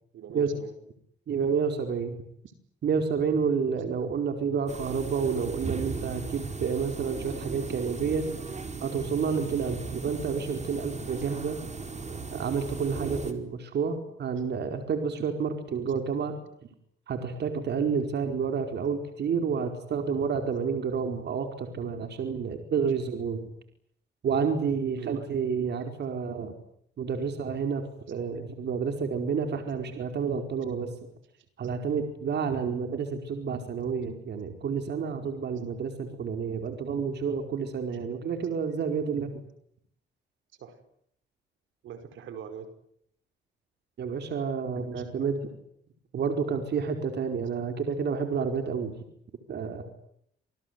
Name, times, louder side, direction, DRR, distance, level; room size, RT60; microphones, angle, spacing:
voice 1, 0.1-0.8 24.9-25.3 37.9-38.0 40.6-40.8 41.8-42.7 44.9-45.0, right 7 dB, 80° right, 9 dB, 5.5 m, -43 dB
voice 2, 1.3-2.2 2.8-8.3 8.8-11.6 12.3-16.4 17.1-23.4 24.2-26.5 27.0-30.9 31.6-39.4 44.0-45.4 46.1-48.9 49.5-49.8, right 6 dB, 60° right, 5 dB, 4.8 m, -29 dB
sound 1, 4.7-13.3, right 4 dB, 35° right, 4.8 m, -37 dB
28.0 x 20.5 x 9.6 m, 0.70 s
cardioid pair, 90°, 20 cm